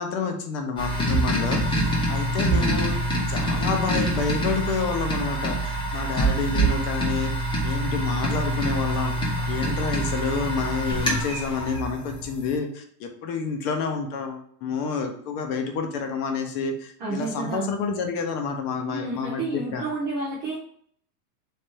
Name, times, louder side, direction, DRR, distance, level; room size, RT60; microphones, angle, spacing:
voice 1, 0.0-2.9 3.3-7.3 7.6-9.1 9.5-19.8, left 5 dB, 40° left, 5 dB, 0.8 m, -29 dB
sound 1, 0.8-12.5, right 1 dB, 10° left, 0.8 m, -25 dB
voice 2, 2.4-2.8 17.0-17.7 18.8-20.6, right 3 dB, 20° right, -6 dB, 0.3 m, -31 dB
3.3 x 3.2 x 4.4 m, 0.63 s
supercardioid pair, 155°, 46 cm